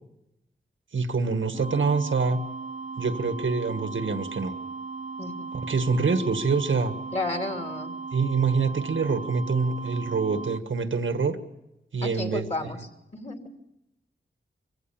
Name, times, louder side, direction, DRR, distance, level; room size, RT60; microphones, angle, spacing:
voice 1, 0.9-2.4 3.0-4.5 5.5-6.9 8.1-11.4 11.9-12.5, right 4 dB, 80° right, 9 dB, 1.5 m, -25 dB
sound 1, 1.5-10.6, right 4 dB, 40° right, 0.7 m, -37 dB
voice 2, 7.1-8.0 12.0-12.9 13.1-13.4, left 2 dB, 35° left, 4 dB, 3.0 m, -32 dB
24.5 x 16.0 x 7.3 m, 0.90 s
wide cardioid pair, 70°, 20 cm